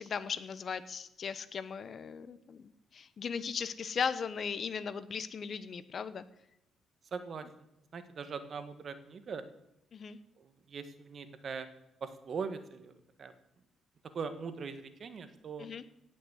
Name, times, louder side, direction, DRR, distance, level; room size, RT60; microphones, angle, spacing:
voice 1, 0.0-6.2 9.9-10.2 15.6-15.8, left 6 dB, 50° left, 14 dB, 1.0 m, -37 dB
voice 2, 7.0-7.5 7.9-9.4 10.4-11.7 12.0-13.3 14.1-15.7, right 5 dB, 50° right, 9 dB, 1.7 m, -41 dB
17.0 x 6.5 x 8.3 m, 0.84 s
cardioid pair, 90°, 0 cm